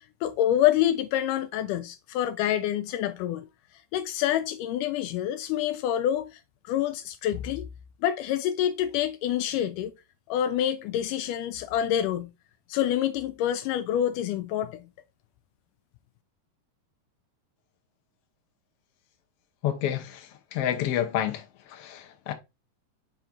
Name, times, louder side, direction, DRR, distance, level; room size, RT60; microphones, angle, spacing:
voice 1, 0.0-3.5 3.9-7.7 8.0-9.9 10.3-12.3 12.7-14.8, left 11 dB, 80° left, 2.0 m, -27 dB
voice 2, 19.6-22.3, left 10 dB, 65° left, 1.6 m, -29 dB
6.1 x 4.3 x 3.8 m
omnidirectional pair, 3.9 m